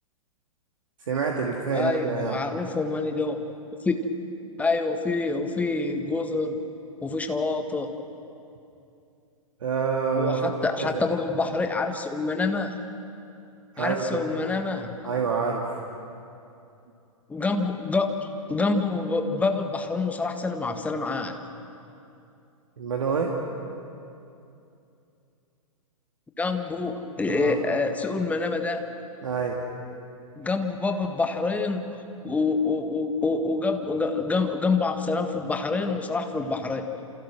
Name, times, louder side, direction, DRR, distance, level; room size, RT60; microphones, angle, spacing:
voice 1, 1.1-2.4 9.6-11.1 13.8-14.2 15.0-15.8 22.8-23.4 27.3-27.6 29.2-29.6, right 5 dB, 60° right, 1 dB, 2.3 m, -27 dB
voice 2, 1.7-3.4 3.8-4.0 4.6-6.6 7.0-7.9 10.1-12.8 13.8-15.1 17.3-18.1 18.5-21.4 26.4-28.8 30.4-32.0 32.2-36.9, left 3 dB, 10° left, 6 dB, 1.6 m, -26 dB
29.0 x 28.0 x 6.2 m, 2.7 s
figure-of-eight pair, 110°, 18 cm